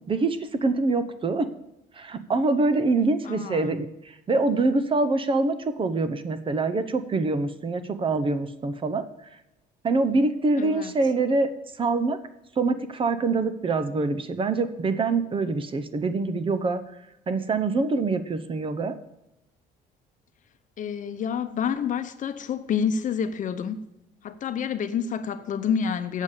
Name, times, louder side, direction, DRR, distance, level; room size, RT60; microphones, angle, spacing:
voice 1, 0.1-1.5 2.0-9.1 9.8-11.5 11.8-12.2 12.6-16.8 17.3-19.0, right 3 dB, 30° right, 0.8 m, -25 dB
voice 2, 3.2-3.7 10.6-10.9 20.8-23.9 24.2-26.2, left 7 dB, 50° left, 0.8 m, -28 dB
8.3 x 7.1 x 6.7 m
cardioid pair, 110°, 17 cm